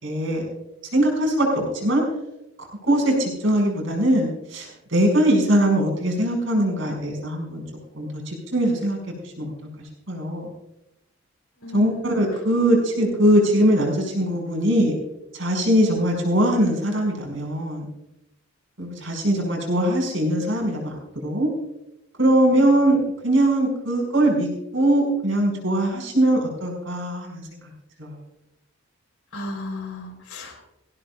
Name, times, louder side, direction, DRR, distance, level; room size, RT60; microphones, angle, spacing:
voice 1, 0.0-0.4 0.9-2.0 2.9-7.6 7.9-9.5 10.1-10.5 11.7-15.0 15.3-17.8 18.8-21.5 22.2-27.5 28.0-28.1, right 1 dB, 60° right, 1 dB, 5.5 m, -21 dB
voice 2, 11.6-12.2 29.3-30.7, left 2 dB, 85° left, 4 dB, 3.8 m, -35 dB
18.5 x 16.5 x 2.4 m, 0.88 s
head